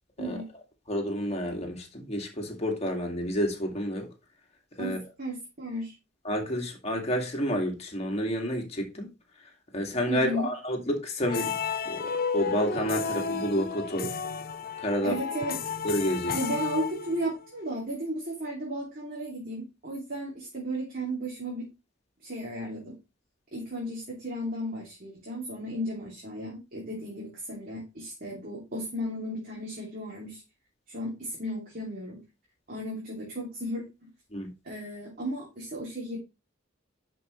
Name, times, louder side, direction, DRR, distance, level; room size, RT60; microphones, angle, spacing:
voice 1, 0.9-4.1 4.8-5.0 6.2-9.1 9.7-11.5 11.9-14.2 14.8-15.2 15.8-16.4 34.3-34.5, equal, 30° left, 2.3 m, -30 dB
voice 2, 4.8-5.9 10.1-10.5 15.0-15.6 16.3-21.7 22.2-23.0 23.5-30.4 30.9-32.2 32.7-34.1 34.6-36.2, equal, 45° right, 2.9 m, -34 dB
sound 1, 11.2-17.5, left 5 dB, 50° left, 0.8 m, -32 dB
10.5 x 5.4 x 3.2 m
head